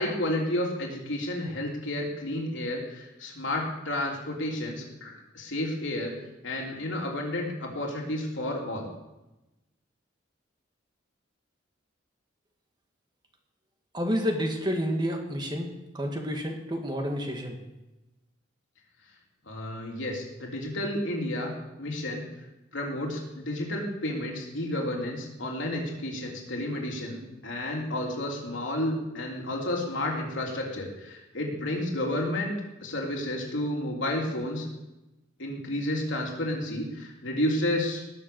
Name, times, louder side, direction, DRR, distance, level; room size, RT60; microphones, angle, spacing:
voice 1, 0.0-6.1 6.4-8.9 19.4-22.3 22.7-32.5 32.8-34.7 35.4-38.0, left 1 dB, 75° left, -1 dB, 3.4 m, -31 dB
voice 2, 13.9-15.7 15.9-17.6, equal, 20° right, 3 dB, 1.8 m, -29 dB
18.5 x 6.9 x 7.0 m, 1.0 s
head